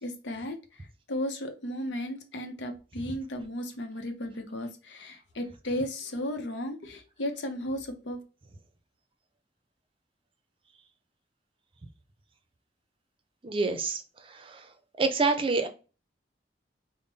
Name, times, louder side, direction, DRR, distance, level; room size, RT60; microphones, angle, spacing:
voice 1, 0.0-8.2, left 1 dB, 80° left, 5 dB, 0.7 m, -35 dB
voice 2, 13.4-14.7 15.0-15.7, right 3 dB, 30° right, 7 dB, 0.5 m, -28 dB
3.6 x 2.1 x 3.9 m, 0.33 s
head